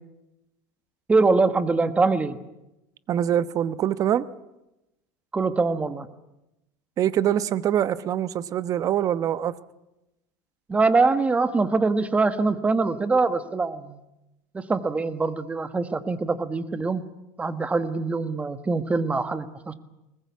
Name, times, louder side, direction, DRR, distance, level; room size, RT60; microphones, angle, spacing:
voice 1, 1.1-2.4 5.3-6.1 10.7-14.0 14.5-17.0 17.4-19.7, right 3 dB, 15° right, 11 dB, 1.4 m, -23 dB
voice 2, 3.1-4.2 7.0-9.6, right 10 dB, 40° right, 15 dB, 1.0 m, -24 dB
21.5 x 19.5 x 8.4 m, 0.92 s
supercardioid pair, 125°, 9 cm